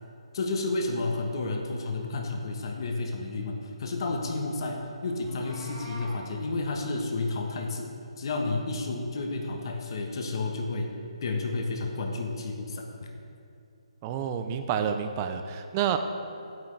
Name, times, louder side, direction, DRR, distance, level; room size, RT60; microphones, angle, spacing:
voice 1, 0.3-7.9 8.2-10.9 11.2-12.9, left 3 dB, 45° left, 2 dB, 1.2 m, -31 dB
Meow, 5.1-6.2, right 1 dB, ahead, 2.0 m, -44 dB
voice 2, 14.0-16.0, right 8 dB, 20° right, 7 dB, 0.5 m, -29 dB
10.5 x 9.0 x 3.3 m, 2.7 s
hypercardioid pair, 160°, 3 cm